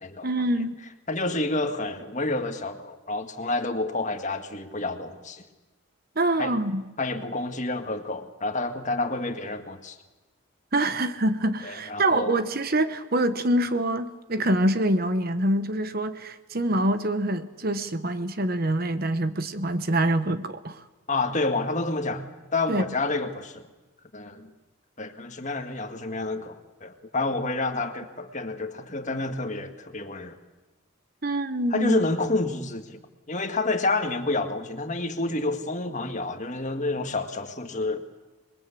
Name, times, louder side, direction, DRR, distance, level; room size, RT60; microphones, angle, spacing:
voice 1, 0.2-0.8 6.2-6.9 10.7-20.9 22.7-22.8 31.2-32.0, right 1 dB, 45° right, 11 dB, 1.1 m, -25 dB
voice 2, 1.1-5.4 6.4-6.5 7.0-10.0 11.6-12.3 21.1-22.2 22.5-23.6 24.1-24.5 25.0-30.4 31.7-32.9 33.3-38.0, left 2 dB, 35° left, 7 dB, 1.9 m, -29 dB
26.5 x 22.0 x 8.5 m, 1.1 s
head